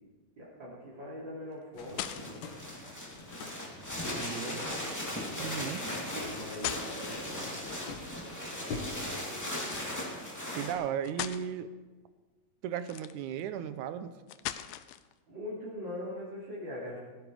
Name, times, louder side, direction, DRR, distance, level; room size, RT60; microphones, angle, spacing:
voice 1, 0.4-2.4 4.1-4.7 5.9-7.6 15.3-17.0, equal, 35° right, -7 dB, 3.4 m, -41 dB
sound 1, 1.5-2.5 4.5-4.9 6.4-7.7 9.6-9.9 10.6-10.7 11.0-11.5 12.8-13.4 14.3-15.1, left 13 dB, 80° left, 2.0 m, -39 dB
sound 2, 1.7-8.9, left 4 dB, 60° left, 3.2 m, -47 dB
sound 3, 1.8-10.7, left 1 dB, 5° left, 1.9 m, -38 dB
voice 2, 5.4-5.8 10.5-11.7 12.6-14.1, right 9 dB, 75° right, 12 dB, 1.9 m, -35 dB
17.0 x 13.5 x 4.8 m, 1.3 s
omnidirectional pair, 4.2 m